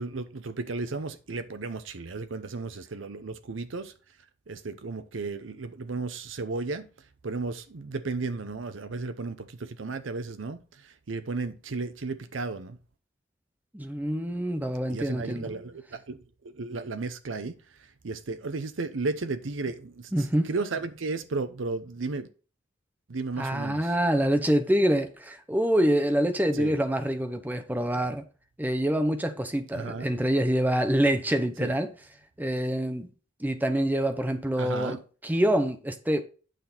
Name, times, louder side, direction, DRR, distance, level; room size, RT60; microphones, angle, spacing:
voice 1, 0.0-3.9 4.5-6.9 7.2-12.8 14.9-17.6 18.0-22.3 23.1-23.9 26.6-26.7 29.7-30.1 31.6-31.7 34.6-35.0, right 3 dB, 80° right, 0.7 m, -34 dB
voice 2, 13.7-15.5 20.1-20.5 23.4-28.2 28.6-31.9 32.4-33.1 33.4-35.0 35.2-36.2, equal, 10° right, 0.9 m, -26 dB
9.3 x 6.0 x 4.1 m
head